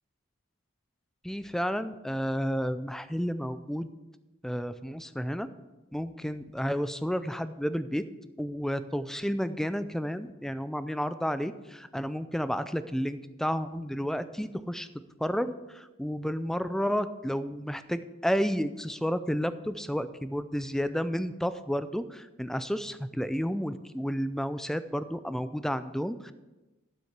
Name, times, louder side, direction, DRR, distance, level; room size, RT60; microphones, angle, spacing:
voice 1, 1.2-3.9 4.4-5.5 5.9-8.0 8.4-14.9 15.2-26.3, equal, ahead, 13 dB, 0.4 m, -31 dB
9.4 x 7.5 x 6.7 m, 1.1 s
head